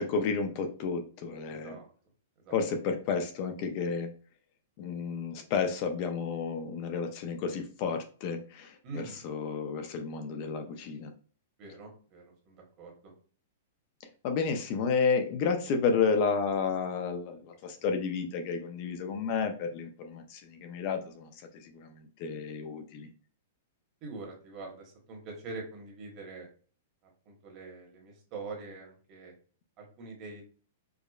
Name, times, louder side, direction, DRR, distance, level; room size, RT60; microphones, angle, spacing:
voice 1, 0.0-1.8 2.5-4.1 4.8-11.1 14.2-23.1, left 5 dB, 40° left, 6 dB, 0.5 m, -31 dB
voice 2, 1.5-1.9 2.4-2.6 2.9-3.0 8.8-9.2 11.6-13.1 24.0-26.5 27.2-29.3 29.8-30.4, right 3 dB, 30° right, 0 dB, 1.2 m, -44 dB
4.8 x 2.1 x 2.3 m, 0.41 s
hypercardioid pair, 155°, 0 cm